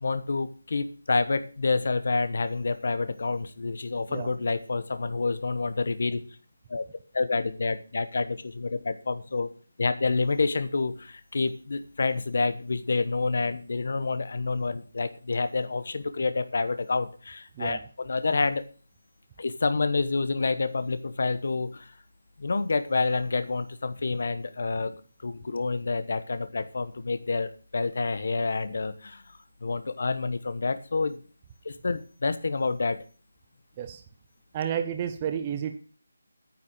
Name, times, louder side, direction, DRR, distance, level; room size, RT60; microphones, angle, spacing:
voice 1, 0.0-6.2 6.7-6.8 7.1-9.5 9.8-18.7 19.4-21.9 22.4-24.9 25.2-29.2 29.6-31.2 31.6-33.0, left 3 dB, 45° left, 12 dB, 1.0 m, -28 dB
voice 2, 34.5-35.8, right 9 dB, 15° right, 7 dB, 0.5 m, -31 dB
9.7 x 7.3 x 7.2 m, 0.40 s
figure-of-eight pair, 180°, 0 cm